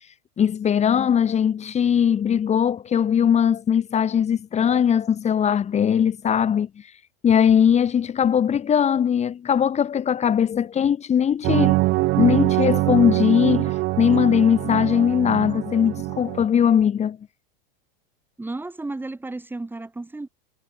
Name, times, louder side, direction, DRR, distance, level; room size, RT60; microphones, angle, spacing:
voice 1, 0.4-6.7 7.2-11.8 12.2-17.2, left 8 dB, 25° left, 3.5 m, -20 dB
sound 1, 11.4-16.5, right 21 dB, 40° right, 0.8 m, -23 dB
voice 2, 18.4-20.3, right 2 dB, 5° right, 4.9 m, -33 dB
supercardioid pair, 140°, 29 cm